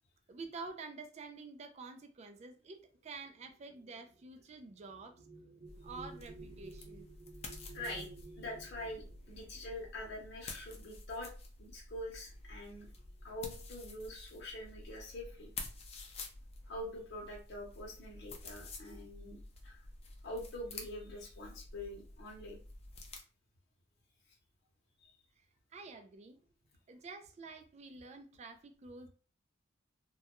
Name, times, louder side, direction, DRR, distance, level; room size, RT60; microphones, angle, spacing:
voice 1, 0.3-5.2 5.8-7.1 25.7-26.4 26.9-29.1, right 4 dB, 35° right, 5 dB, 0.3 m, -48 dB
sound 1, 2.5-11.4 12.3-12.5 12.8-13.4, right 3 dB, 70° right, 0.6 m, -55 dB
sound 2, 5.6-23.2, left 3 dB, 30° left, 0.4 m, -50 dB
voice 2, 7.7-8.1 8.4-11.3 11.6-12.9 13.2-15.5 16.7-19.8 20.2-22.6 25.0-25.2, left 1 dB, 60° left, -3 dB, 0.7 m, -45 dB
2.2 x 2.2 x 2.9 m, 0.37 s
head